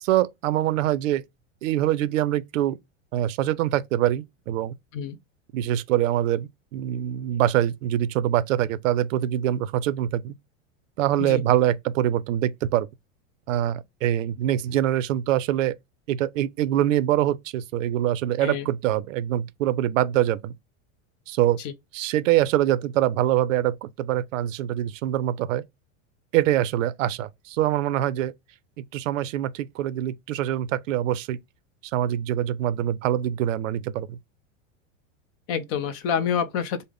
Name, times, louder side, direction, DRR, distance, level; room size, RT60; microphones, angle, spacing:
voice 1, 0.0-1.2 1.6-2.8 3.1-4.7 5.5-10.4 11.0-12.9 13.5-15.8 16.1-20.5 21.3-21.6 21.9-25.6 26.3-28.3 28.8-31.4 31.8-34.2, right 12 dB, 85° right, 0.5 m, -24 dB
voice 2, 35.5-36.8, left 7 dB, 40° left, 0.5 m, -27 dB
3.3 x 2.1 x 3.5 m
supercardioid pair, 130°, 37 cm